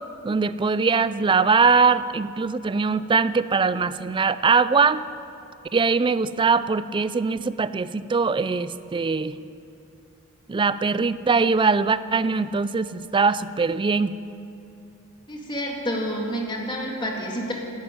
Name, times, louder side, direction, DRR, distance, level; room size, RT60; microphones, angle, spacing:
voice 1, 0.2-5.0 5.7-9.4 10.5-14.1, right 4 dB, 20° right, 15 dB, 0.4 m, -22 dB
voice 2, 15.3-17.5, equal, 20° left, 0 dB, 2.1 m, -29 dB
11.5 x 10.5 x 9.2 m, 2.7 s
head